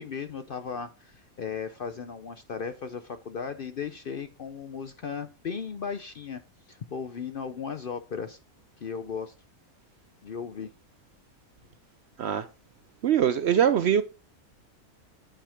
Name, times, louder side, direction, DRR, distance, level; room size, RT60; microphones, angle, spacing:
voice 1, 0.0-6.4 6.7-8.4 8.8-9.3 10.2-10.7, left 6 dB, 55° left, 0.6 m, -36 dB
voice 2, 13.0-14.0, right 9 dB, 65° right, 0.7 m, -22 dB
9.1 x 4.9 x 4.9 m
omnidirectional pair, 1.5 m